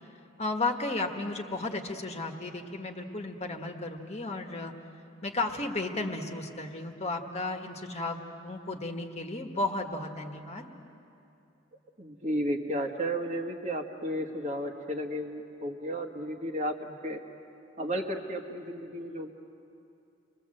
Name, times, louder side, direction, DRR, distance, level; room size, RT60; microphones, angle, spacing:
voice 1, 0.4-4.7 5.2-10.7, left 2 dB, 35° left, 4 dB, 1.5 m, -34 dB
voice 2, 12.0-17.2 17.8-19.3, equal, 35° right, 3 dB, 1.5 m, -33 dB
29.5 x 21.5 x 7.8 m, 2.7 s
head